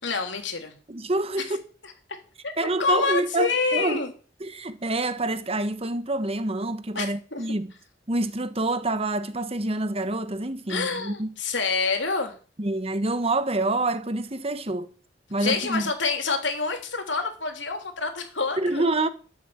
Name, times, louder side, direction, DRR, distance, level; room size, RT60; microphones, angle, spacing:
voice 1, 0.0-0.7 1.4-1.6 1.8-1.9 2.4-4.1 6.9-7.5 10.7-12.3 15.4-18.9, left 4 dB, 85° left, 3.4 m, -27 dB
voice 2, 0.9-1.6 2.6-4.0 4.4-7.7 8.1-11.3 12.6-14.9 15.3-15.8 18.6-19.1, right 2 dB, 35° right, 1.2 m, -27 dB
13.0 x 8.4 x 8.8 m
head